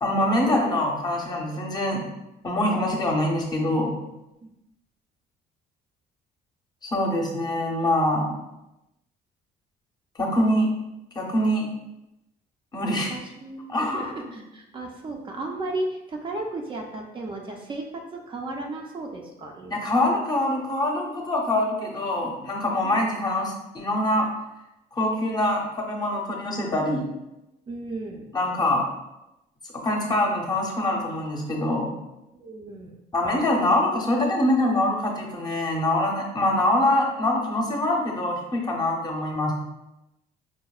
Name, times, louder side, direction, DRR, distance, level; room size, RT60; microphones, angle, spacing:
voice 1, 0.0-2.1 2.4-3.9 6.8-8.3 10.2-10.7 11.1-11.7 12.7-13.1 13.7-14.1 19.7-24.3 24.9-27.0 28.3-28.9 29.7-31.9 33.1-39.5, left 1 dB, 25° left, -1 dB, 0.7 m, -24 dB
voice 2, 13.1-20.0 22.8-23.0 27.7-28.3 32.3-33.0, right 2 dB, 30° right, 0 dB, 0.4 m, -35 dB
4.7 x 2.0 x 2.3 m, 0.92 s
cardioid pair, 110°, 17 cm